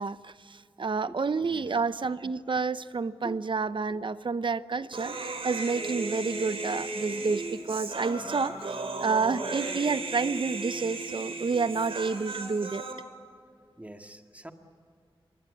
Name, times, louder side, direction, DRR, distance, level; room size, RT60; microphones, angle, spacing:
voice 1, 0.0-8.5 9.0-12.8, right 4 dB, 60° right, 14 dB, 0.8 m, -29 dB
voice 2, 1.1-1.8 3.2-3.4 13.8-14.5, right 1 dB, 15° right, 5 dB, 2.0 m, -44 dB
Human voice, 4.9-12.9, right 3 dB, 80° right, 3.6 m, -35 dB
27.0 x 22.0 x 8.6 m, 2.3 s
wide cardioid pair, 65°, 10 cm